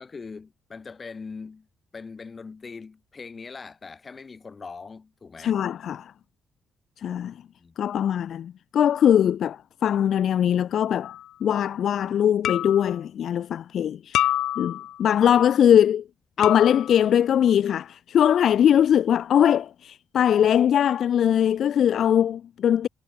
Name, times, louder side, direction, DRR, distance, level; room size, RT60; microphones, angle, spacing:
voice 1, 0.0-1.7 1.9-5.6 7.6-7.8, left 4 dB, 25° left, 5.6 m, -41 dB
voice 2, 5.4-6.1 7.0-7.3 7.8-11.1 11.4-14.3 14.6-16.0 16.4-22.9, left 9 dB, 60° left, 0.8 m, -21 dB
sound 1, 11.0-11.3 12.4-13.0 14.1-15.0 16.4-17.1, left 12 dB, 90° left, 2.2 m, -27 dB
cardioid pair, 150°, 0 cm